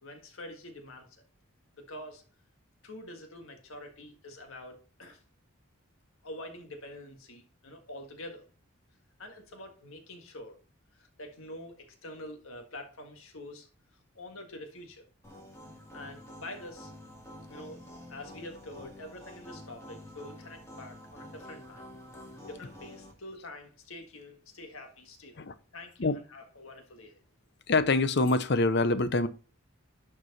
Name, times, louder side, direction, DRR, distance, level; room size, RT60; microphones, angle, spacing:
voice 1, 0.0-1.1 1.7-2.2 2.8-5.2 6.2-8.4 9.2-10.6 10.9-13.7 14.2-15.1 15.9-16.9 17.5-17.8 18.1-21.8 22.4-27.1, left 1 dB, 80° left, 1.7 m, -46 dB
sound 1, 15.2-23.1, left 1 dB, 15° left, 2.3 m, -48 dB
voice 2, 27.7-29.3, left 3 dB, 55° left, 0.7 m, -25 dB
11.5 x 4.7 x 4.1 m
head